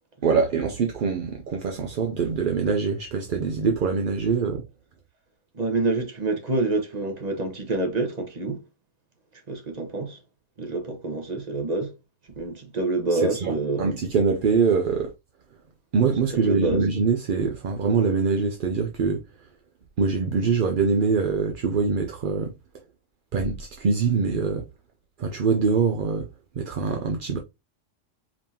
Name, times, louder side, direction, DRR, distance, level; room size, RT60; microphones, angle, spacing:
voice 1, 0.2-4.6 13.1-15.1 15.9-19.2 20.0-22.5 23.3-24.6 25.2-26.3 26.6-27.4, right 5 dB, 50° right, 0.7 m, -24 dB
voice 2, 5.5-8.6 9.5-10.2 10.6-11.9 12.4-13.9 16.3-16.8, right 2 dB, 35° right, 1.2 m, -27 dB
5.1 x 3.6 x 2.8 m
omnidirectional pair, 1.3 m